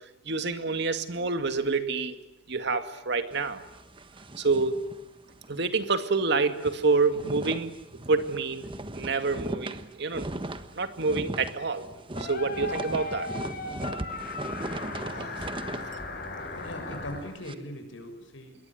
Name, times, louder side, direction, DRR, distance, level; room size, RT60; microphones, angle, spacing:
voice 1, 0.3-2.1 2.5-3.6 4.4-4.8 5.5-7.7 8.1-8.7 8.9-10.3 10.8-11.9 12.2-13.3, right 4 dB, 60° right, 8 dB, 2.3 m, -27 dB
sound 1, 3.3-5.6 5.9-6.0 6.4-17.5, right 1 dB, 25° right, 1.4 m, -38 dB
sound 2, 12.1-17.2, left 3 dB, 50° left, 7.3 m, -37 dB
voice 2, 15.9-16.2 16.6-18.6, left 1 dB, 80° left, 6 dB, 7.1 m, -40 dB
27.5 x 22.5 x 9.5 m, 0.92 s
head